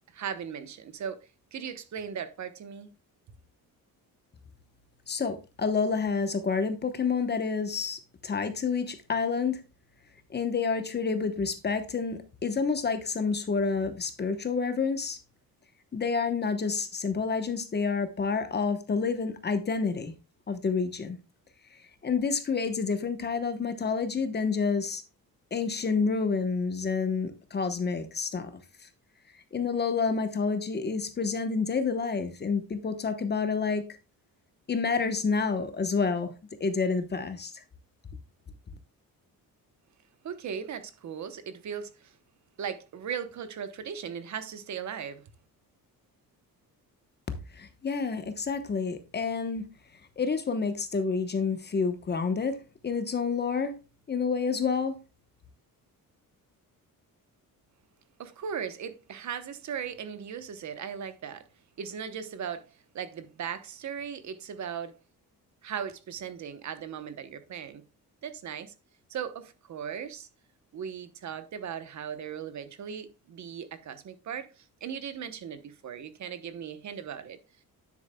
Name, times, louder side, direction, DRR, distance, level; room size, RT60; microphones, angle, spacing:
voice 1, 0.1-2.9 40.2-42.1 42.6-45.2 58.2-61.4 61.8-62.6 62.9-65.0 65.6-67.8 68.2-68.7 69.1-70.3 70.7-77.4, right 7 dB, 50° right, 0.9 m, -38 dB
voice 2, 5.1-9.6 10.3-15.2 15.9-20.1 20.5-21.2 22.0-25.0 25.5-28.5 29.5-33.8 34.7-36.3 36.6-37.6 47.5-49.7 50.2-52.6 52.8-53.7 54.1-55.0, left 5 dB, 30° left, 1.0 m, -29 dB
9.9 x 7.5 x 2.2 m
cardioid pair, 155°, 36 cm